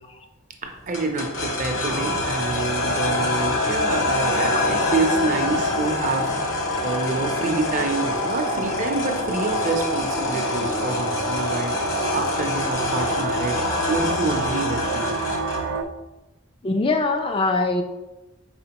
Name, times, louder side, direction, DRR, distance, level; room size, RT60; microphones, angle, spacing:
voice 1, 0.6-13.6 13.9-15.2, right 3 dB, 40° right, 4 dB, 0.6 m, -27 dB
sound 1, 0.9-15.8, left 2 dB, 75° left, 0.8 m, -25 dB
sound 2, 8.6-15.8, right 4 dB, 90° right, 0.3 m, -32 dB
voice 2, 16.6-17.8, left 3 dB, 25° left, 4 dB, 0.3 m, -22 dB
4.3 x 4.2 x 2.9 m, 1.0 s
head